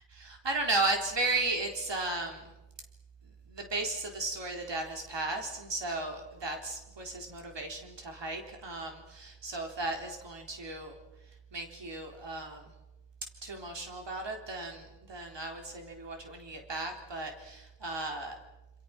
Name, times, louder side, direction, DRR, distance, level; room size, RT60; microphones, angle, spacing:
voice 1, 0.1-2.5 3.5-11.0 11.5-12.7 13.4-18.4, right 2 dB, 75° right, 2 dB, 4.1 m, -35 dB
28.5 x 28.5 x 6.1 m, 1.0 s
wide cardioid pair, 100°, 43 cm